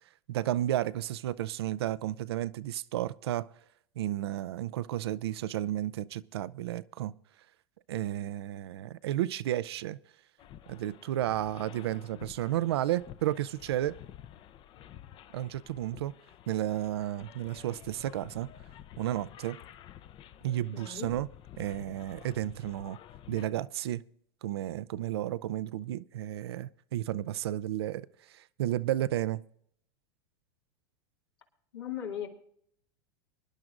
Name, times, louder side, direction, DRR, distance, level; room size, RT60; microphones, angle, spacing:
voice 1, 0.3-3.5 4.0-7.1 7.9-10.0 10.7-14.0 15.3-16.1 16.5-18.5 19.0-19.6 20.4-21.3 21.6-23.0 23.3-24.0 24.4-29.4, right 13 dB, 80° right, 0.5 m, -32 dB
sound 1, 10.4-23.5, left 11 dB, 40° left, 0.6 m, -51 dB
voice 2, 20.7-21.1 31.7-32.3, left 9 dB, 90° left, 2.4 m, -37 dB
24.5 x 10.5 x 2.5 m
hypercardioid pair, 105°, 13 cm